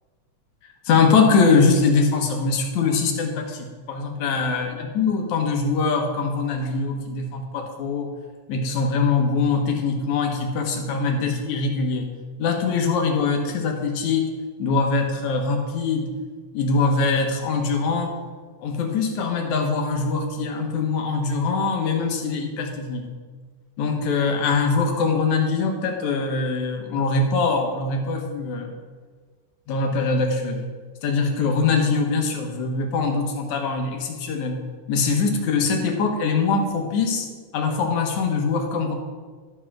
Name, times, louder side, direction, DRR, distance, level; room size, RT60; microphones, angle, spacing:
voice 1, 0.9-8.1 8.5-12.1 12.4-14.3 14.6-16.2 16.5-18.2 18.6-23.1 23.8-28.8 29.7-30.6 31.0-34.6 34.9-37.3 37.5-38.9, left 4 dB, 75° left, 3 dB, 2.5 m, -22 dB
12.0 x 5.5 x 6.1 m, 1.5 s
omnidirectional pair, 3.4 m